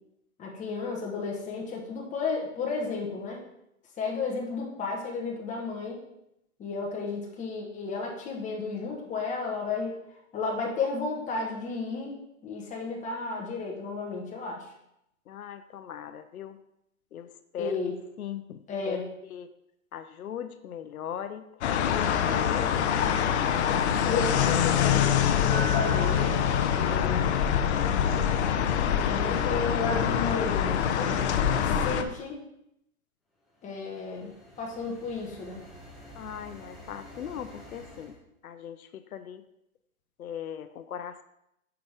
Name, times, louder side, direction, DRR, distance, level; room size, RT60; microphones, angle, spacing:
voice 1, 0.4-3.4 4.0-6.0 6.6-10.0 10.3-12.1 12.4-14.6 17.6-17.9 18.7-19.0 24.0-26.3 26.7-27.3 29.1-32.4 33.6-35.6, left 4 dB, 15° left, -1 dB, 1.3 m, -33 dB
voice 2, 15.3-16.6 17.1-17.8 18.2-19.5 19.9-21.5 21.8-24.1 24.5-24.9 36.1-38.2 38.4-39.4 40.2-41.2, left 9 dB, 90° left, 11 dB, 0.6 m, -39 dB
sound 1, 21.6-32.0, left 9 dB, 50° left, 0.7 m, -25 dB
Glass, 25.5-29.6, right 2 dB, 35° left, 1.7 m, -41 dB
sound 2, 33.5-38.2, equal, ahead, 1.0 m, -49 dB
7.5 x 5.8 x 3.5 m, 0.81 s
hypercardioid pair, 130°, 42 cm